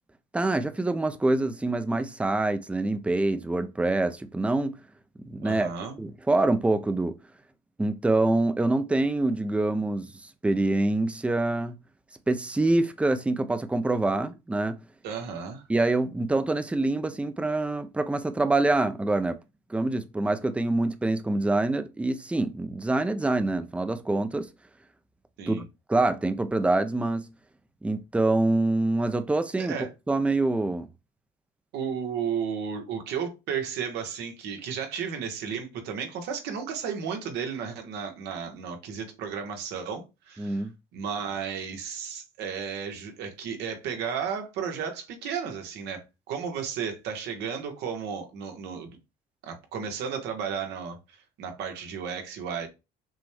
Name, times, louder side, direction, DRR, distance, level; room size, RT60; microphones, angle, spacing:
voice 1, 0.3-4.8 5.3-5.7 6.0-7.2 7.8-10.1 10.4-11.8 12.3-14.8 15.7-19.4 19.7-24.5 25.5-25.6 25.9-27.2 27.8-30.9 40.4-40.7, right 2 dB, 5° right, 0.4 m, -25 dB
voice 2, 5.4-6.0 15.0-15.6 25.4-25.6 29.6-29.9 31.7-40.7 40.9-49.0 49.4-51.0 51.4-52.7, right 7 dB, 85° right, 1.2 m, -33 dB
6.0 x 2.2 x 3.4 m
cardioid pair, 110°, 17 cm